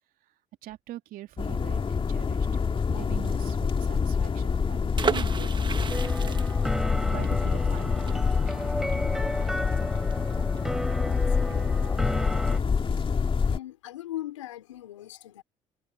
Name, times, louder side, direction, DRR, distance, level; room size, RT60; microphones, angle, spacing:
voice 1, 0.6-2.5 2.9-6.4 6.7-6.8 7.1-8.6, right 14 dB, 65° right, 2.7 m, -43 dB
sound 1, 1.4-13.6, left 5 dB, 35° left, 2.1 m, -26 dB
sound 2, 4.9-10.6 10.9-11.0 11.2-11.5, right 5 dB, 30° right, 1.6 m, -34 dB
sound 3, 5.9-12.6, equal, ahead, 4.9 m, -34 dB
voice 2, 11.0-12.6 13.4-15.4, left 14 dB, 90° left, 4.4 m, -41 dB
hypercardioid pair, 60°, 16 cm